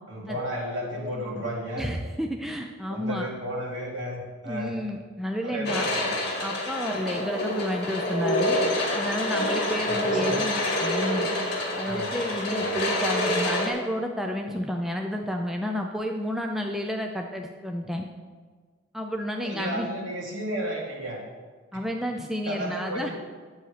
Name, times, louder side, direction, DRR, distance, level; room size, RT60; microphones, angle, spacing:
voice 1, 0.1-1.8 2.9-4.7 5.4-6.2 9.7-10.4 11.8-12.1 12.5-12.9 19.3-21.2 22.5-23.1, equal, 65° right, -4 dB, 3.1 m, -33 dB
voice 2, 1.8-3.3 4.5-5.9 6.4-8.6 8.9-11.3 11.8-18.0 18.9-19.9 21.7-23.1, equal, ahead, 2 dB, 0.5 m, -30 dB
sound 1, 5.6-13.7, left 1 dB, 55° left, 2.2 m, -27 dB
10.5 x 7.9 x 5.0 m, 1.5 s
head